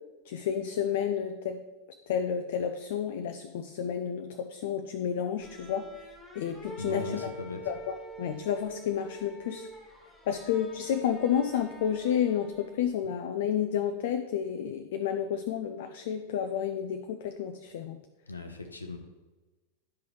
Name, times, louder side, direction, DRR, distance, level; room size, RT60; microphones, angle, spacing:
voice 1, 0.2-1.6 2.1-5.9 6.3-7.3 7.6-9.7 10.3-18.0, left 8 dB, 55° left, 7 dB, 0.4 m, -31 dB
sound 1, 5.4-12.9, left 1 dB, 10° left, 1.6 m, -47 dB
voice 2, 6.8-7.7 18.3-19.0, left 2 dB, 80° left, 6 dB, 0.7 m, -38 dB
10.0 x 5.3 x 3.2 m, 1.2 s
figure-of-eight pair, 90°, 0 cm